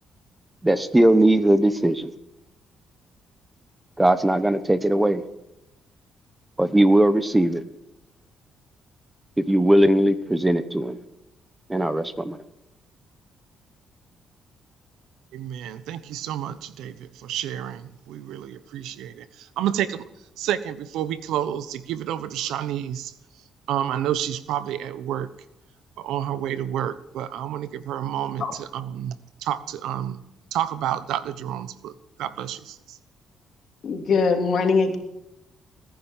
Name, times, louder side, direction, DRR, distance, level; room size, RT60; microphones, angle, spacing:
voice 1, 0.6-2.1 4.0-5.2 6.6-7.6 9.4-11.0 11.7-12.4, right 1 dB, 10° right, 12 dB, 1.2 m, -19 dB
voice 2, 15.3-19.2 19.6-20.0 20.4-23.1 23.7-25.3 26.0-30.2 30.5-31.9 32.2-32.8, right 11 dB, 85° right, 15 dB, 1.0 m, -29 dB
voice 3, 33.8-35.0, left 4 dB, 55° left, 4 dB, 3.1 m, -21 dB
18.5 x 10.5 x 7.3 m, 0.90 s
cardioid pair, 90°, 0 cm